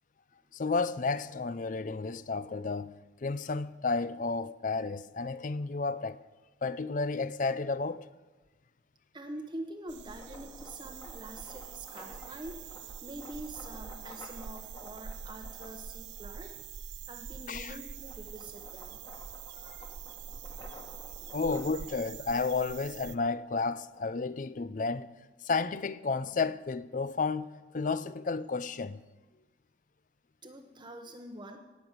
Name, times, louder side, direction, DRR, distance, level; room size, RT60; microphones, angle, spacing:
voice 1, 0.5-6.2 6.6-8.1 17.5-17.8 21.3-25.1 25.4-27.5 27.7-29.0, left 4 dB, 45° left, 0.5 m, -32 dB
voice 2, 9.1-12.6 13.0-16.6 17.1-19.0 21.2-21.4 30.4-31.6, right 1 dB, 25° right, 0.9 m, -45 dB
sound 1, 9.9-23.2, right 7 dB, 65° right, 0.5 m, -45 dB
sound 2, 10.0-16.6 17.1-24.3, left 2 dB, 25° left, 1.7 m, -53 dB
17.5 x 6.2 x 8.8 m
head